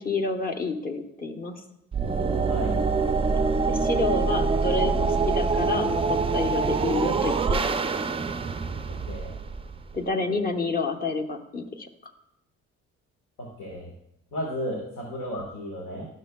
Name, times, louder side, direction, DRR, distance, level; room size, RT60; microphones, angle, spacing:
voice 1, 0.0-1.6 3.7-7.8 9.9-12.1, left 3 dB, 30° left, 5 dB, 1.0 m, -29 dB
sound 1, 1.9-10.0, right 4 dB, 20° right, 0.4 m, -25 dB
voice 2, 13.4-13.9 14.3-16.1, equal, 85° left, -1 dB, 1.5 m, -33 dB
11.5 x 6.4 x 2.2 m, 0.83 s
cardioid pair, 90°, 30 cm